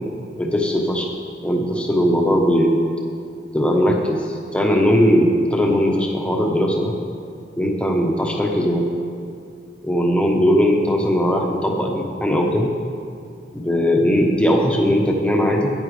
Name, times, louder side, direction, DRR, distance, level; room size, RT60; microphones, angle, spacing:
voice 1, 0.4-1.1 1.4-2.8 3.5-6.9 7.6-8.9 9.8-12.7 13.5-15.7, equal, 5° left, 0 dB, 1.0 m, -19 dB
14.5 x 9.7 x 3.3 m, 2.5 s
head